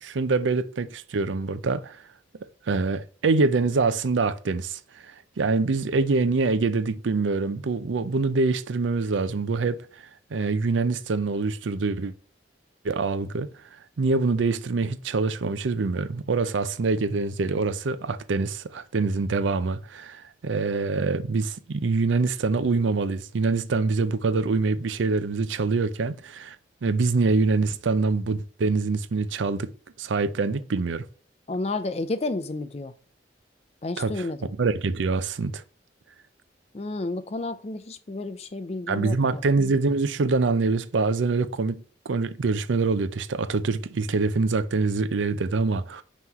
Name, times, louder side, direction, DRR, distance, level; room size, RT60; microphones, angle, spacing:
voice 1, 0.0-2.0 2.7-9.9 10.3-12.1 12.8-13.5 14.0-26.6 26.8-29.7 30.0-31.1 34.0-34.3 34.6-35.6 38.9-46.0, right 3 dB, 80° right, 0.5 m, -25 dB
voice 2, 31.5-32.9 33.8-34.5 36.7-39.4, left 2 dB, 35° left, 0.4 m, -31 dB
5.7 x 3.1 x 5.5 m
head